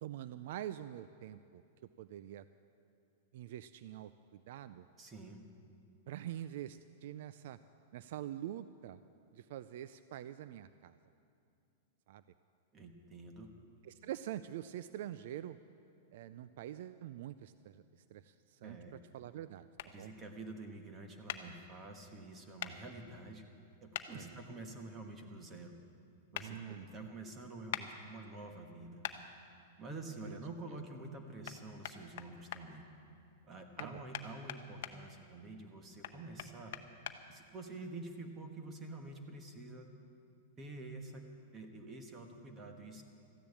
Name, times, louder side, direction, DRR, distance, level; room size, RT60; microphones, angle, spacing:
voice 1, 0.0-1.6 2.0-2.4 3.3-4.9 6.1-7.6 7.9-9.0 9.3-11.0 12.1-12.2 13.8-15.6 16.1-17.8 18.1-18.8 19.1-19.7 20.0-20.1 24.1-24.3 26.4-26.9 30.2-30.4 33.8-34.0, right 12 dB, 60° right, 14 dB, 0.4 m, -45 dB
voice 2, 5.0-5.4 12.7-13.5 18.6-19.0 19.9-23.4 23.8-25.7 26.3-29.1 29.8-32.9 33.4-36.8 37.3-39.9 40.6-41.2 41.5-43.0, right 2 dB, 20° right, 5 dB, 1.3 m, -48 dB
sound 1, 19.8-19.9 21.3-21.4 22.6-22.7 23.9-24.1 26.3-26.5 27.7-27.9 29.0-29.2 31.4-31.6 31.8-32.6 33.8-34.9 36.0-37.2, left 12 dB, 60° left, 0.8 m, -41 dB
14.0 x 10.5 x 8.4 m, 2.5 s
supercardioid pair, 160°, 0 cm